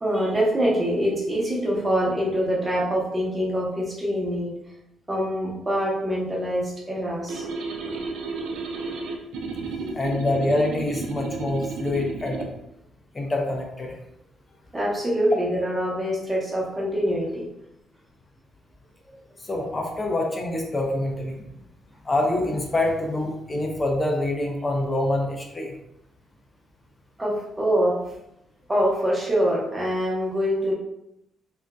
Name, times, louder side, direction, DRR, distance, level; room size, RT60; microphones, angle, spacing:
voice 1, 0.0-4.5 5.1-7.4 9.7-10.1 14.7-17.4 27.2-28.0 28.7-30.7, equal, 15° right, -4 dB, 1.0 m, -24 dB
sound 1, 7.3-12.5, right 4 dB, 85° right, 0.4 m, -32 dB
voice 2, 9.9-12.5 13.1-14.0 19.4-21.4 22.0-25.7, left 2 dB, 25° left, 1 dB, 0.6 m, -26 dB
3.5 x 2.5 x 2.3 m, 0.82 s
cardioid pair, 90°, 0 cm